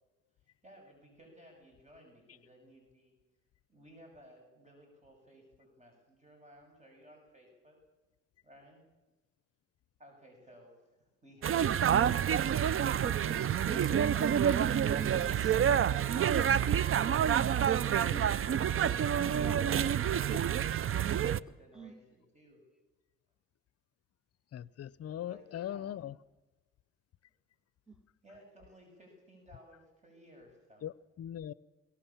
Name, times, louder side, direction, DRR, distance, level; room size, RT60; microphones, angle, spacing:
voice 1, 0.6-3.2 3.7-7.8 8.4-8.8 10.0-12.5 13.4-13.5 18.9-22.6 25.3-26.0 28.2-30.9, equal, 25° right, 6.9 m, -58 dB
sound 1, 11.4-21.4, right 9 dB, 45° right, 0.6 m, -28 dB
voice 2, 13.0-14.4 14.7-15.6 18.0-18.4 18.7-19.0 19.4-19.6 21.7-21.9 27.9-28.0, right 3 dB, ahead, 1.7 m, -44 dB
voice 3, 24.5-26.1 30.8-31.5, left 11 dB, 55° left, 0.7 m, -40 dB
22.5 x 18.0 x 7.2 m
cardioid pair, 90°, 30 cm